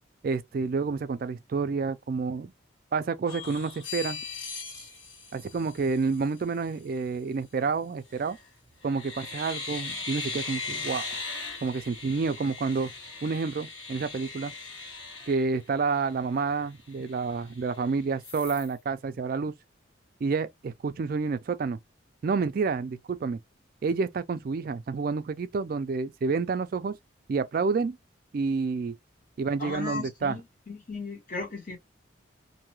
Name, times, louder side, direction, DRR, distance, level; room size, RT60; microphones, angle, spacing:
voice 1, 0.2-2.5 2.9-4.2 5.3-8.4 8.8-11.2 11.6-12.9 13.2-14.5 15.3-19.5 20.2-21.8 22.2-23.4 23.8-27.0 27.3-28.0 28.3-28.9 29.4-30.4, right 4 dB, 45° right, 0.3 m, -29 dB
sound 1, 3.3-6.3 8.1-8.5 8.8-16.1 16.5-16.6 16.9-17.8 18.2-18.7, left 4 dB, 75° left, 1.5 m, -39 dB
voice 2, 29.6-30.4 30.7-31.8, left 3 dB, 40° left, 1.1 m, -36 dB
2.6 x 2.3 x 3.0 m
head